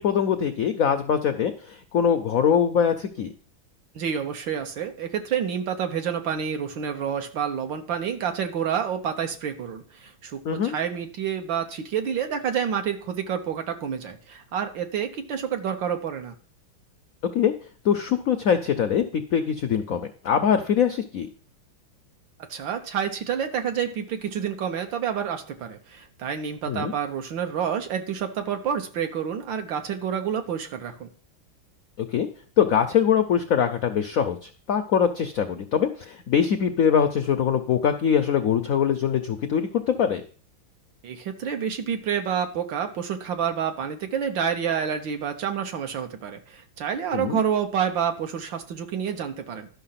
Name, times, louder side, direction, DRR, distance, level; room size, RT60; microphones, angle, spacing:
voice 1, 0.0-3.3 10.4-10.8 17.3-17.5 17.8-21.3 26.7-26.9 32.0-32.3 32.6-40.2 47.1-47.4, left 8 dB, 75° left, 7 dB, 0.8 m, -23 dB
voice 2, 3.9-16.4 22.5-31.1 41.0-49.7, right 8 dB, 70° right, 6 dB, 1.7 m, -28 dB
12.0 x 5.7 x 5.7 m, 0.43 s
omnidirectional pair, 2.2 m